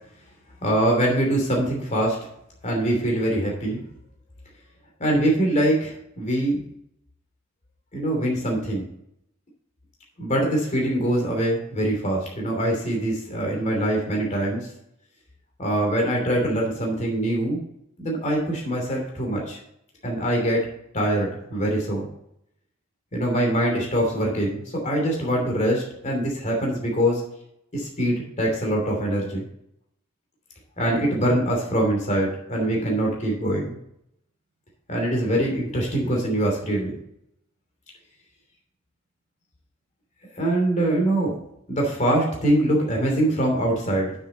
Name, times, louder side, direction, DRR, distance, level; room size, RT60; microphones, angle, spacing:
voice 1, 0.6-2.2 2.6-3.8 5.0-6.6 7.9-8.8 10.2-14.7 15.6-17.6 18.0-19.6 20.0-20.6 20.9-22.1 23.1-27.2 27.7-29.5 30.8-33.8 34.9-37.0 40.3-41.3 41.7-44.1, right 1 dB, 35° left, -1 dB, 2.9 m, -23 dB
9.5 x 6.7 x 4.0 m, 0.76 s
head